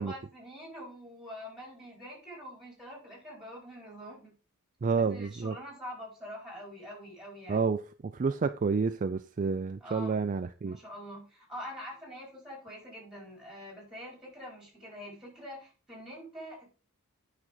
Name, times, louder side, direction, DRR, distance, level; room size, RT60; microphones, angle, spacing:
voice 1, 0.0-4.3 5.0-7.7 9.8-10.2 10.6-16.7, equal, ahead, 5.1 m, -45 dB
voice 2, 4.8-5.6 7.5-10.8, right 5 dB, 35° right, 0.4 m, -29 dB
9.1 x 6.1 x 3.9 m
head